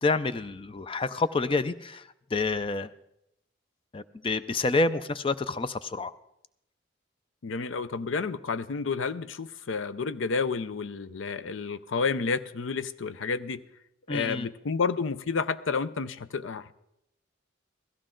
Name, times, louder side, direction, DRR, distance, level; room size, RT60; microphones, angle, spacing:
voice 1, 0.0-2.9 3.9-6.1 14.1-14.5, left 3 dB, 25° left, 13 dB, 0.4 m, -28 dB
voice 2, 7.4-13.6 14.1-16.7, left 5 dB, 80° left, 14 dB, 0.5 m, -30 dB
16.0 x 14.0 x 3.8 m, 0.81 s
head